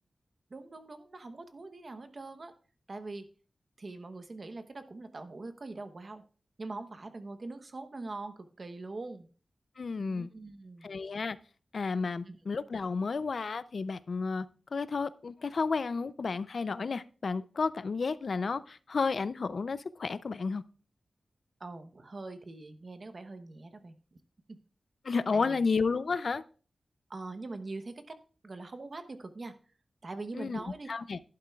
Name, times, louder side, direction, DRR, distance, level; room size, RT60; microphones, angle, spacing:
voice 1, 0.5-2.5 2.9-3.2 3.8-6.2 6.6-9.3 10.0-10.9 12.2-12.4 21.6-24.0 25.3-25.7 27.1-28.2 28.4-29.5 30.0-31.1, right 3 dB, 45° right, 0.9 m, -43 dB
voice 2, 9.8-10.3 10.8-11.4 11.7-14.5 14.7-20.6 25.0-26.4 30.3-30.6 30.9-31.2, left 4 dB, 65° left, 0.4 m, -32 dB
11.5 x 11.5 x 2.4 m
wide cardioid pair, 115°, 0 cm